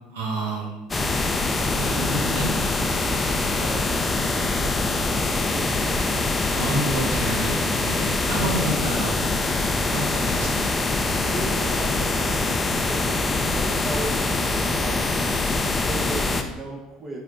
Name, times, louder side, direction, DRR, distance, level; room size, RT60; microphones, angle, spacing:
voice 1, 0.1-0.9 1.8-2.5 6.5-10.5, right 1 dB, 75° right, -2 dB, 1.4 m, -29 dB
sound 1, 0.9-16.4, left 3 dB, 20° left, 0.6 m, -24 dB
voice 2, 3.2-7.0 8.3-8.4 8.7-8.8 10.3-10.5 11.2-12.5 12.9-17.2, right 2 dB, 30° right, -1 dB, 1.4 m, -37 dB
9.4 x 4.2 x 2.6 m, 1.0 s
figure-of-eight pair, 65°, 0 cm